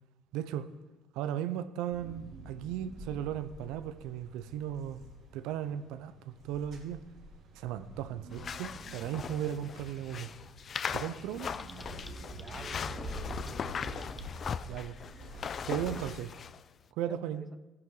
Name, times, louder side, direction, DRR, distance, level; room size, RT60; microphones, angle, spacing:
voice 1, 0.3-0.7 1.1-5.0 5.3-7.0 7.5-10.3 10.9-11.5 14.7-15.0 15.7-16.3 17.0-17.4, right 10 dB, 85° right, 0.7 m, -36 dB
sound 1, 1.9-16.1, right 1 dB, 60° right, 3.0 m, -47 dB
sound 2, 8.3-16.6, left 7 dB, 40° left, 0.4 m, -39 dB
Typing, 11.5-14.3, left 1 dB, 10° left, 0.8 m, -55 dB
voice 2, 11.6-11.9 12.3-14.2 14.7-14.8 17.1-17.6, right 4 dB, 25° right, 0.7 m, -50 dB
16.0 x 10.5 x 4.0 m
cardioid pair, 105°, 0 cm